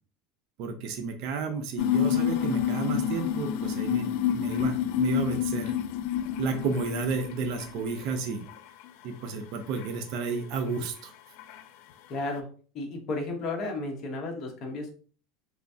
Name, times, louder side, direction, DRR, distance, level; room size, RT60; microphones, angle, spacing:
voice 1, 0.6-5.7 6.4-8.4 9.0-11.1, right 5 dB, 55° right, 6 dB, 0.6 m, -32 dB
sound 1, 1.8-8.2 8.5-9.0 9.8-9.9 10.7-10.8 11.4-11.6, left 10 dB, 65° left, 0.3 m, -29 dB
voice 2, 12.1-12.5 12.7-14.9, left 2 dB, 40° left, 2 dB, 1.0 m, -33 dB
3.3 x 3.0 x 2.7 m, 0.41 s
supercardioid pair, 135°, 0 cm